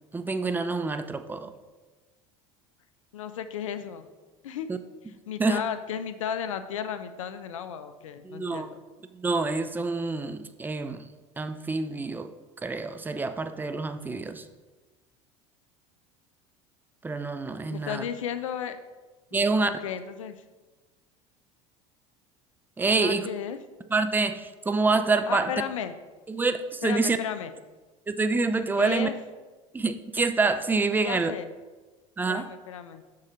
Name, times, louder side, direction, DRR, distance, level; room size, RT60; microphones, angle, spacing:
voice 1, 0.1-1.5 4.7-4.8 5.4-5.6 8.2-8.7 9.1-11.1 11.4-12.3 12.6-14.4 17.0-18.0 19.3-19.7 22.8-23.3 23.9-25.5 26.3-27.2 28.1-29.1 29.7-31.3 32.2-32.5, right 3 dB, 10° right, 10 dB, 0.4 m, -27 dB
voice 2, 3.1-4.1 4.4-4.7 5.3-8.8 17.7-18.8 19.3-20.4 22.9-23.6 25.3-25.9 26.8-27.5 28.8-29.1 31.0-31.5 32.3-33.0, left 8 dB, 85° left, 11 dB, 0.5 m, -34 dB
6.4 x 3.7 x 4.3 m, 1.2 s
hypercardioid pair, 80°, 16 cm